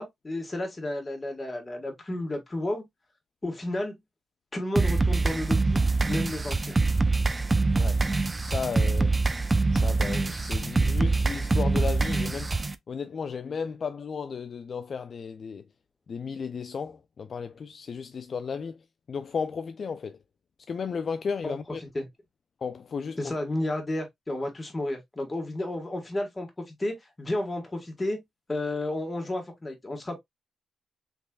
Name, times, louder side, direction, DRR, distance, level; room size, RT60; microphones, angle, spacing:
voice 1, 0.0-2.9 3.4-4.0 4.5-5.8 6.1-6.8 21.4-22.1 23.2-28.2 28.5-30.2, left 1 dB, 25° left, 1.6 m, -32 dB
sound 1, 4.8-12.7, right 3 dB, 25° right, 0.4 m, -24 dB
voice 2, 8.4-9.1 9.7-12.5 12.9-15.6 16.1-18.8 19.1-20.2 20.7-21.8 22.6-23.2, left 5 dB, 55° left, 0.3 m, -34 dB
3.5 x 3.1 x 2.3 m
cardioid pair, 85°, 0 cm